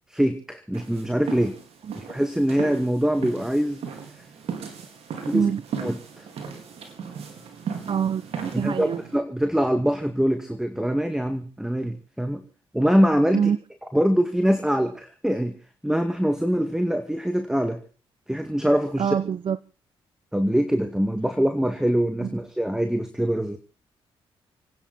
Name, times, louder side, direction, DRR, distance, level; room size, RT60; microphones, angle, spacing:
voice 1, 0.1-1.5 2.0-3.8 5.2-5.5 5.8-6.3 8.5-12.4 12.7-13.4 13.9-15.5 15.8-17.8 18.3-19.1 20.3-23.6, equal, 5° right, 2.1 m, -23 dB
sound 1, 0.7-9.2, right 6 dB, 75° right, 4.1 m, -37 dB
voice 2, 5.3-5.6 7.9-9.0 13.3-13.6 19.0-19.6 22.2-22.3, right 7 dB, 55° right, 0.7 m, -25 dB
30.0 x 10.0 x 4.1 m
supercardioid pair, 60°, 11 cm